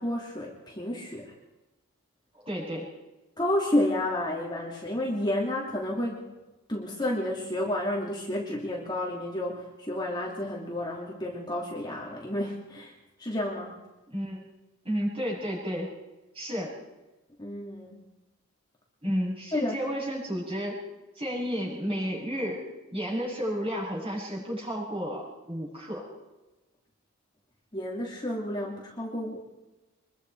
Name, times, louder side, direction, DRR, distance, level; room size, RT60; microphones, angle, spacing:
voice 1, 0.0-1.3 3.4-6.3 6.7-12.9 13.2-13.8 17.4-18.0 19.5-19.8 27.7-29.4, left 1 dB, 20° left, -2 dB, 2.9 m, -31 dB
voice 2, 2.3-2.9 14.1-14.4 14.8-15.9 16.3-16.8 19.0-20.8 21.1-22.6 22.9-26.0, equal, 25° right, -4 dB, 7.7 m, -32 dB
25.0 x 22.5 x 4.8 m, 1.1 s
head